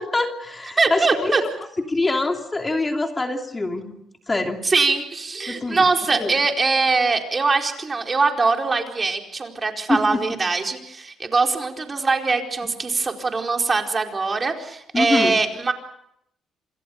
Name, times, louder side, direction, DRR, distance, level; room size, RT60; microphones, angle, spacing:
voice 1, 0.0-1.3 1.9-4.0 4.3-4.6 5.5-5.8 6.1-6.3 9.9-10.2 14.9-15.3, left 2 dB, 20° left, 3 dB, 2.9 m, -24 dB
voice 2, 0.8-1.4 4.6-15.7, right 4 dB, 30° right, 3 dB, 4.5 m, -22 dB
28.0 x 27.5 x 5.4 m, 0.74 s
cardioid pair, 90°, 0 cm